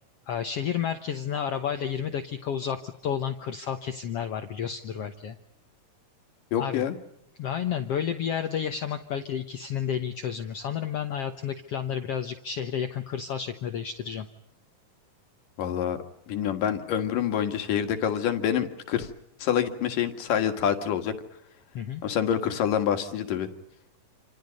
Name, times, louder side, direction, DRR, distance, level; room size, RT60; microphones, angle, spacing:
voice 1, 0.3-5.4 6.6-6.9 7.4-14.3 21.7-22.0, left 8 dB, 60° left, 7 dB, 1.8 m, -31 dB
voice 2, 6.5-7.0 15.6-16.0 16.3-19.1 19.4-21.2 22.0-23.5, left 9 dB, 85° left, 7 dB, 3.5 m, -26 dB
28.5 x 27.0 x 5.3 m, 0.76 s
omnidirectional pair, 3.7 m